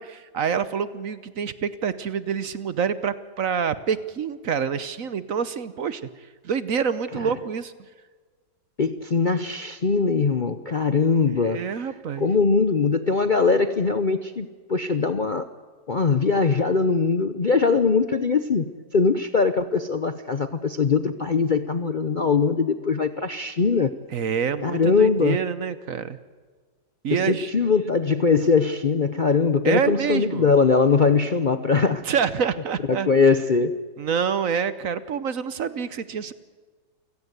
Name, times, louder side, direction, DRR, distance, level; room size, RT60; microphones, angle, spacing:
voice 1, 0.0-6.0 6.4-7.7 11.4-12.3 24.1-26.2 27.0-27.5 29.6-30.5 32.1-33.1 34.0-36.3, right 7 dB, 55° right, 15 dB, 1.2 m, -27 dB
voice 2, 8.8-11.7 12.2-15.5 15.9-23.9 24.6-25.4 27.1-32.0 32.9-33.8, left 4 dB, 45° left, 11 dB, 0.7 m, -21 dB
29.0 x 17.0 x 8.1 m, 1.5 s
omnidirectional pair, 1.8 m